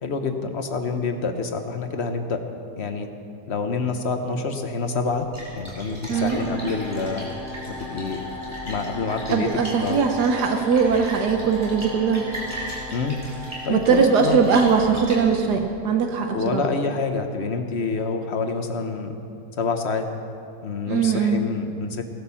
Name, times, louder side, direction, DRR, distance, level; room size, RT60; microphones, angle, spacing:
voice 1, 0.0-2.4 2.8-3.1 3.5-5.3 5.5-7.3 7.9-8.2 8.6-9.5 9.8-10.0 12.9-13.2 13.6-14.4 16.3-19.1 19.6-20.1 20.6-22.0, left 4 dB, 45° left, 6 dB, 1.2 m, -27 dB
Splash splatter, 5.1-15.7, right 1 dB, 15° right, 4.4 m, -38 dB
Long Uh, 6.1-15.0, left 1 dB, 20° left, 5.3 m, -37 dB
voice 2, 9.3-12.2 13.7-16.6 20.9-21.4, right 6 dB, 75° right, 4 dB, 1.5 m, -20 dB
17.5 x 11.5 x 7.0 m, 2.7 s
omnidirectional pair, 1.8 m